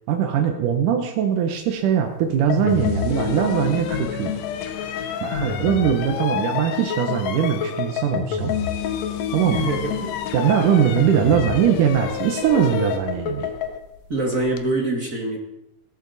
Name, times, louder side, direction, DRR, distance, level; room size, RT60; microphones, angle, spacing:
voice 1, 0.1-4.3 5.2-8.5 9.3-9.7 10.3-13.5, right 8 dB, 80° right, 3 dB, 2.7 m, -21 dB
sound 1, 2.5-2.6 3.1-8.3 8.5-14.7, left 7 dB, 90° left, 2.5 m, -33 dB
sound 2, 2.5-13.8, left 7 dB, 65° left, 2.4 m, -29 dB
voice 2, 9.5-10.1 14.1-15.4, right 2 dB, 35° right, 1 dB, 1.6 m, -25 dB
16.5 x 14.0 x 4.1 m, 0.89 s
omnidirectional pair, 3.6 m